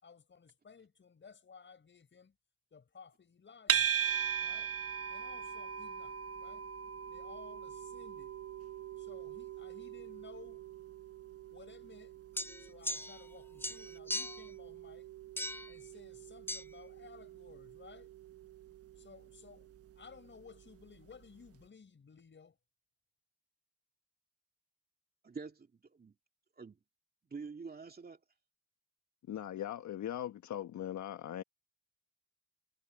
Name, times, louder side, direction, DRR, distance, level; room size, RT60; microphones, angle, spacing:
voice 1, 0.0-2.3 2.7-3.9 4.4-4.7 5.1-6.7 7.1-8.4 9.0-10.6 11.5-12.1 12.6-15.1 15.7-18.1 19.0-22.6, left 5 dB, 40° left, 5.9 m, -57 dB
sound 1, 3.7-20.9, right 8 dB, 50° right, 1.2 m, -40 dB
sound 2, 12.4-13.3 13.6-14.5 15.4-15.7 16.5-16.6, left 1 dB, 5° left, 0.8 m, -39 dB
voice 2, 25.2-26.2 26.6-26.8 27.3-28.2, right 4 dB, 30° right, 2.8 m, -46 dB
voice 3, 29.3-31.4, left 11 dB, 70° left, 1.4 m, -40 dB
cardioid pair, 90°, 30 cm